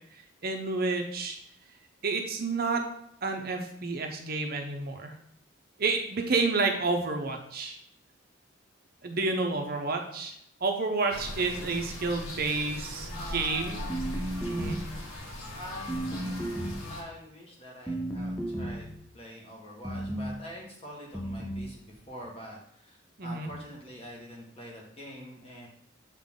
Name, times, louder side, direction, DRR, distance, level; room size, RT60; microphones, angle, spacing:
voice 1, 0.4-1.4 2.0-2.8 3.2-5.1 5.8-7.8 9.0-10.3 10.6-13.8 14.5-14.8 23.2-23.5, right 3 dB, 45° right, 3 dB, 0.7 m, -30 dB
sound 1, 11.1-17.0, left 1 dB, 90° left, 1.3 m, -39 dB
voice 2, 13.1-14.1 14.4-14.6 15.5-16.4 16.9-25.7, equal, 30° left, -2 dB, 1.5 m, -45 dB
sound 2, 13.9-15.0 15.9-17.0 17.9-19.0 19.8-20.4 21.1-21.7, right 1 dB, 5° left, 0.6 m, -34 dB
7.3 x 3.9 x 3.7 m, 0.71 s
head